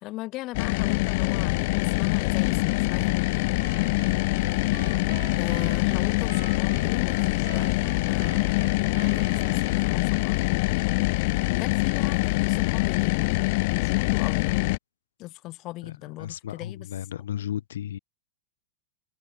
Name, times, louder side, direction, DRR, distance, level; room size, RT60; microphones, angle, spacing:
voice 1, 0.0-3.2 5.4-8.6 8.9-10.7 11.5-14.5 15.2-16.9, left 18 dB, 35° left, 1.6 m, -38 dB
sound 1, 0.5-14.8, left 24 dB, 50° left, 0.6 m, -24 dB
sound 2, 3.6-10.2, right 15 dB, 65° right, 2.7 m, -45 dB
voice 2, 4.3-5.0 15.8-15.9 16.2-18.0, left 11 dB, 85° left, 1.2 m, -34 dB
supercardioid pair, 155°, 0 cm